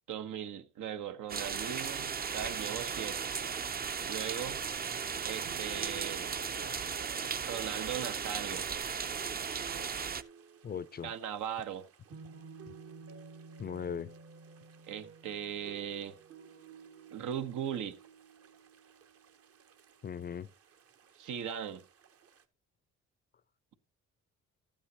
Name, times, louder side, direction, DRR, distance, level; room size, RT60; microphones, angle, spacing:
voice 1, 0.1-3.3 4.1-4.6 5.2-6.3 7.4-8.7 11.0-11.9 14.9-16.2 17.1-18.0 21.2-21.8, right 9 dB, 80° right, 1.0 m, -38 dB
sound 1, 1.3-10.2, right 6 dB, 30° right, 0.5 m, -36 dB
sound 2, 3.1-22.4, right 5 dB, 50° right, 1.0 m, -54 dB
voice 2, 10.6-11.1 12.7-12.8 13.6-14.1 20.0-20.5, left 7 dB, 35° left, 0.4 m, -38 dB
13.0 x 8.7 x 2.8 m
cardioid pair, 90°, 30 cm